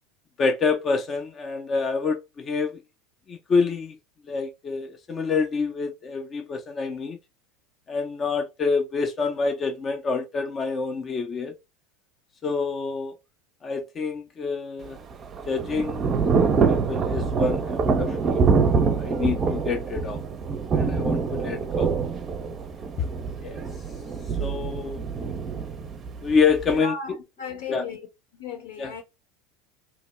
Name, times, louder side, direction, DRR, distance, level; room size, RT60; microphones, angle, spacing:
voice 1, 0.4-2.8 3.3-4.0 4.3-7.2 7.9-11.5 12.4-13.1 13.6-15.0 15.5-16.1 16.7-18.4 19.0-20.2 20.7-21.9 23.4-23.6 24.4-25.0 26.2-27.0 27.7-27.8 28.8-28.9, left 4 dB, 30° left, 0.6 m, -27 dB
Thunder / Rain, 14.8-26.8, right 5 dB, 35° right, 0.5 m, -25 dB
voice 2, 26.7-28.1 28.3-29.0, left 5 dB, 80° left, 1.1 m, -36 dB
2.9 x 2.1 x 3.1 m
hypercardioid pair, 95°, 0 cm